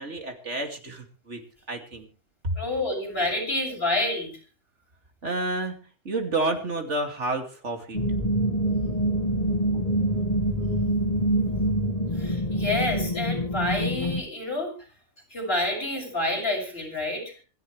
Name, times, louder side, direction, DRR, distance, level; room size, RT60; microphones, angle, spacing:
voice 1, 0.0-1.4 1.7-2.1 2.4-2.5 5.2-5.8 6.0-8.0, right 2 dB, 90° right, 4 dB, 3.0 m, -29 dB
voice 2, 2.6-4.4 12.2-14.7 15.3-17.3, left 1 dB, 55° left, 0 dB, 7.0 m, -28 dB
sound 1, 7.9-14.2, right 1 dB, 35° left, 1.9 m, -25 dB
26.0 x 11.0 x 3.4 m, 0.36 s
omnidirectional pair, 1.2 m